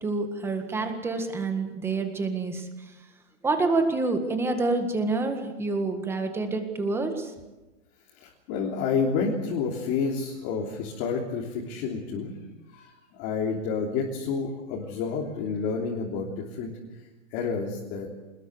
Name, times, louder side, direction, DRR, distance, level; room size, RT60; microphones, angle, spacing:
voice 1, 0.0-2.7 3.4-7.3, right 3 dB, 5° right, 6 dB, 1.8 m, -27 dB
voice 2, 8.1-12.3 12.7-16.7 17.3-18.1, left 5 dB, 25° left, -1 dB, 3.4 m, -29 dB
26.0 x 20.5 x 8.1 m, 1.1 s
hypercardioid pair, 165°, 37 cm